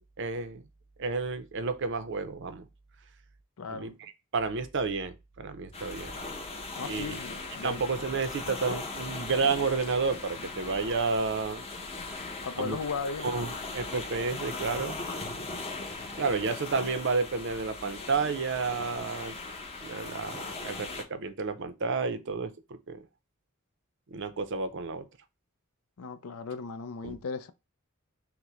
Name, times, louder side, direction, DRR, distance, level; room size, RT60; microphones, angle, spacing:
voice 1, 0.2-0.6 1.0-2.7 3.7-6.2 6.8-7.2 7.6-11.6 12.6-12.8 13.2-15.0 16.2-19.4 19.8-23.0 24.1-25.1 27.0-27.2, right 4 dB, 55° right, 0.6 m, -31 dB
voice 2, 3.6-3.9 6.8-7.8 12.4-13.3 26.0-27.5, left 4 dB, 80° left, 0.5 m, -36 dB
sound 1, 5.7-21.0, left 3 dB, 25° left, 0.8 m, -39 dB
5.8 x 2.1 x 3.0 m
head